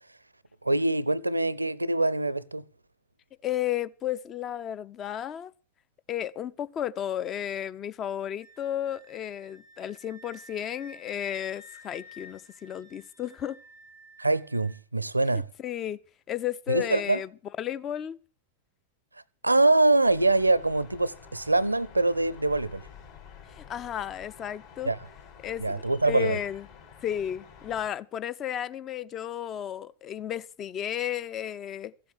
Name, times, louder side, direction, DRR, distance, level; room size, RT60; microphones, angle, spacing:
voice 1, 0.6-2.6 14.2-15.5 16.7-17.2 19.4-22.8 24.9-25.0 25.6-26.4, right 2 dB, 85° right, 0.6 m, -24 dB
voice 2, 3.4-5.5 6.1-13.6 15.3-16.0 16.3-17.3 17.6-18.2 23.6-24.9 25.4-26.7 27.0-31.9, left 10 dB, 30° left, 0.6 m, -33 dB
Wind instrument woodwind instrument, 8.4-14.8, left 2 dB, 85° left, 5.3 m, -52 dB
sound 1, 20.0-27.9, left 7 dB, 55° left, 3.9 m, -50 dB
15.5 x 7.8 x 7.9 m
figure-of-eight pair, 90°, 0 cm